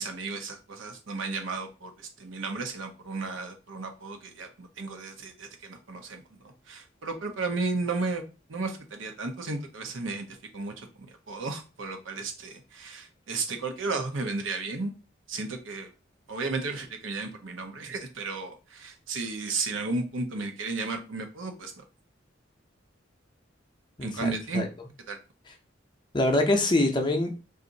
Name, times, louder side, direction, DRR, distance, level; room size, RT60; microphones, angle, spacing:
voice 1, 0.0-6.2 6.7-8.2 8.5-10.2 10.5-10.9 11.3-14.9 15.3-15.9 16.3-21.8 24.0-24.7 25.1-25.2, right 3 dB, 85° right, 5 dB, 0.7 m, -33 dB
voice 2, 24.0-24.7 26.1-27.4, left 2 dB, 25° left, 3 dB, 0.5 m, -25 dB
2.5 x 2.5 x 3.9 m, 0.31 s
head